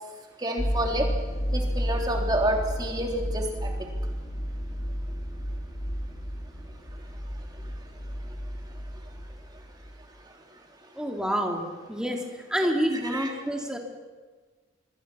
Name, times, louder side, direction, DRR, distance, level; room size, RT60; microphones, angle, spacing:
voice 1, 0.4-1.1 1.5-3.9 13.0-13.3, right 1 dB, 20° right, 1 dB, 3.2 m, -29 dB
sound 1, 0.6-9.6 9.8-10.1, equal, 30° left, 1.9 m, -32 dB
voice 2, 11.0-12.2 12.5-13.8, equal, 5° right, 1 dB, 2.5 m, -28 dB
26.0 x 23.0 x 6.2 m, 1.4 s
head